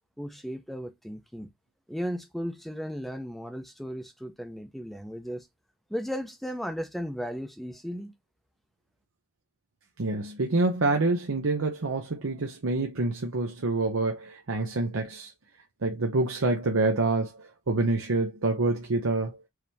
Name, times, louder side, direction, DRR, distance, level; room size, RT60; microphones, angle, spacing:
voice 1, 0.2-1.5 1.9-5.5 5.9-8.1, equal, ahead, 0.6 m, -35 dB
voice 2, 10.0-15.3 15.8-19.4, right 2 dB, 70° right, 0.8 m, -27 dB
4.8 x 2.9 x 3.4 m
head